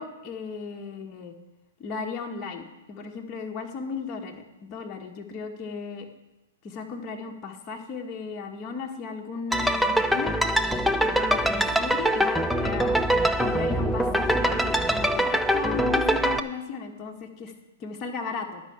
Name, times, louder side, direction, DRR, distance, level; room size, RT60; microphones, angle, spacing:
voice 1, 0.0-1.3 1.8-6.1 6.6-10.3 11.0-13.0 13.4-17.5 17.8-18.6, left 5 dB, 30° left, 1 dB, 1.6 m, -35 dB
sound 1, 9.5-16.4, equal, ahead, 0.5 m, -23 dB
10.5 x 5.7 x 8.2 m, 1.1 s
hypercardioid pair, 125°, 0 cm